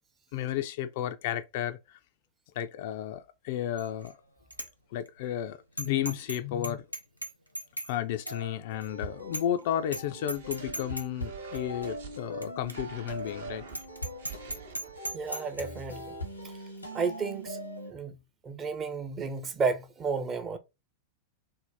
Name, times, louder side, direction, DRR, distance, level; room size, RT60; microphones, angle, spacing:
voice 1, 0.3-2.0 2.5-4.2 4.9-6.9 7.9-13.6 14.5-14.7, left 11 dB, 50° left, 0.3 m, -33 dB
Bicycle bell, 3.8-4.1 4.5-4.7 5.1-5.2 5.8-6.4 6.6-7.9 8.3-8.4 8.8-8.9 9.3-9.6 9.9-10.0 10.3-11.1 11.5-11.6 12.4-12.5 12.7-12.8 13.2-13.3 13.7-15.6, right 1 dB, 90° right, 0.4 m, -37 dB
sound 1, 8.3-17.9, equal, 90° left, 0.8 m, -41 dB
sound 2, 10.3-12.2 12.6-15.3, right 8 dB, 60° right, 0.7 m, -48 dB
voice 2, 15.1-16.1 16.9-17.6 17.9-18.1 18.4-20.6, right 5 dB, 25° right, 0.5 m, -32 dB
2.6 x 2.1 x 3.2 m
figure-of-eight pair, 90°, 0 cm